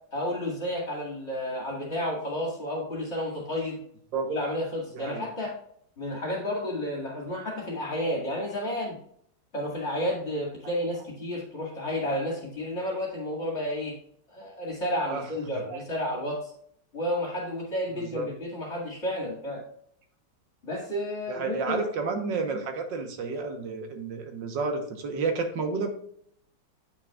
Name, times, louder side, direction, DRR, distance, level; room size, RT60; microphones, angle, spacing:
voice 1, 0.1-3.8 4.3-5.5 6.0-9.0 9.5-14.0 14.3-16.5 16.9-19.6 20.6-21.8, left 1 dB, 40° left, -2 dB, 2.3 m, -31 dB
voice 2, 15.0-15.8 17.9-18.3 21.3-25.9, right 4 dB, 85° right, 5 dB, 1.8 m, -31 dB
8.5 x 6.2 x 2.4 m, 0.66 s
omnidirectional pair, 1.9 m